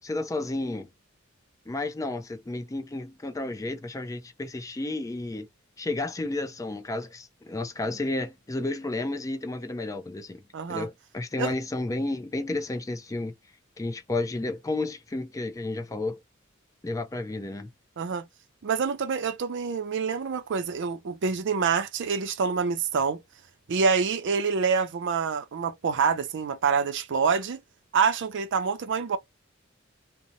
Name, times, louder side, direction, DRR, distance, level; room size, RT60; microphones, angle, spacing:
voice 1, 0.0-0.9 1.7-5.5 5.8-10.4 10.7-13.3 13.8-16.2 16.8-17.7, left 2 dB, 15° left, 0.4 m, -32 dB
voice 2, 10.5-10.9 11.4-11.5 18.0-18.3 18.6-23.2 23.7-27.6 27.9-29.2, right 5 dB, 60° right, 0.4 m, -26 dB
2.7 x 2.1 x 2.6 m
head